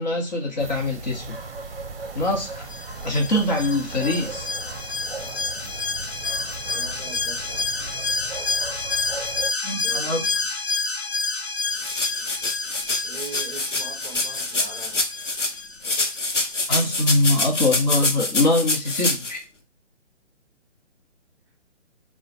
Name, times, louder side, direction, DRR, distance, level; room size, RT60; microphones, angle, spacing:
voice 1, 0.0-1.4 2.1-2.7 3.0-4.5 9.6-10.3 16.7-19.4, left 2 dB, 35° left, 1.3 m, -23 dB
sound 1, 0.6-9.5, right 4 dB, 55° right, 0.7 m, -37 dB
Alarm, 2.7-16.2 16.5-16.6, left 4 dB, 60° left, 0.7 m, -29 dB
voice 2, 5.2-5.8 6.7-7.7 9.8-10.4 13.0-15.0, right 4 dB, 10° right, 0.9 m, -41 dB
sound 2, 11.7-15.5 15.8-19.3, left 2 dB, 80° left, 1.0 m, -26 dB
3.6 x 2.5 x 4.0 m
figure-of-eight pair, 135°, 36 cm